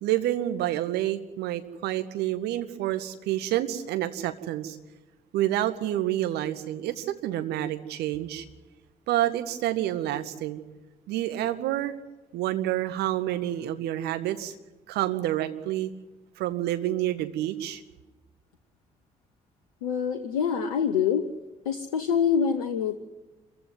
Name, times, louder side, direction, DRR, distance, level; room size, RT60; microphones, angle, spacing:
voice 1, 0.0-4.8 5.3-8.4 9.1-10.6 11.1-12.0 12.3-14.5 14.9-15.9 16.4-17.8, right 13 dB, 60° right, 10 dB, 2.0 m, -28 dB
voice 2, 19.8-21.3 21.6-23.0, left 7 dB, 75° left, 9 dB, 1.1 m, -25 dB
27.5 x 15.5 x 9.4 m, 1.1 s
figure-of-eight pair, 45°, 19 cm